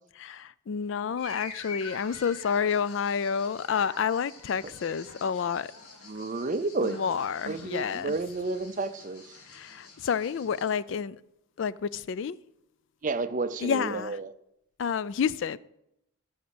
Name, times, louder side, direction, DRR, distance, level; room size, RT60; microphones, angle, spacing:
voice 1, 0.2-5.7 6.8-8.2 9.5-11.2 11.6-12.4 13.6-14.2 14.8-15.6, left 6 dB, 60° left, 0.3 m, -29 dB
sound 1, 1.2-10.7, left 4 dB, 90° left, 2.0 m, -47 dB
voice 2, 6.1-7.2 7.4-9.4 13.0-14.3, right 3 dB, 35° right, 0.5 m, -31 dB
12.5 x 5.1 x 7.0 m
head